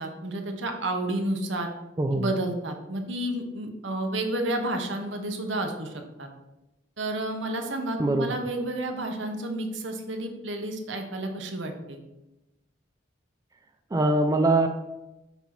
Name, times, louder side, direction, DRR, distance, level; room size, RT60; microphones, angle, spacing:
voice 1, 0.0-1.7 2.1-6.3 7.0-12.0, right 1 dB, 75° right, 4 dB, 0.9 m, -31 dB
voice 2, 2.0-2.3 8.0-8.4 13.9-14.7, right 2 dB, 20° right, 5 dB, 0.3 m, -22 dB
7.0 x 2.8 x 5.8 m, 0.97 s
head